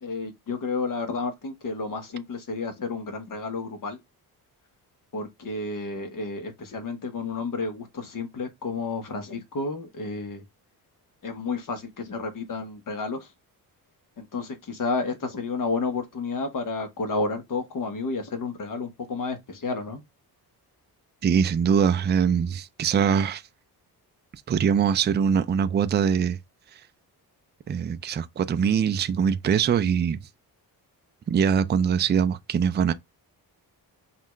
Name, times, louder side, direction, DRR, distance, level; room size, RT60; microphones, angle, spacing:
voice 1, 0.0-4.0 5.1-10.4 11.2-13.3 14.2-20.0, left 3 dB, 55° left, 1.2 m, -31 dB
voice 2, 21.2-23.4 24.5-26.4 26.7-26.8 27.7-30.2 31.3-32.9, right 7 dB, 30° right, 0.4 m, -23 dB
5.5 x 2.5 x 3.1 m
cardioid pair, 125°, 38 cm